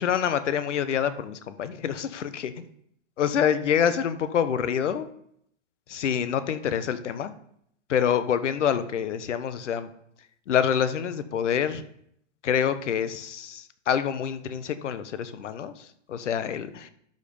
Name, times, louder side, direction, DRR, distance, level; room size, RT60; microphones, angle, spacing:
voice 1, 0.0-2.6 3.2-5.1 5.9-7.3 7.9-9.9 10.5-11.8 12.4-15.7 16.1-16.9, left 8 dB, 70° left, 12 dB, 1.1 m, -26 dB
12.0 x 5.4 x 5.4 m, 0.71 s
hypercardioid pair, 120°, 38 cm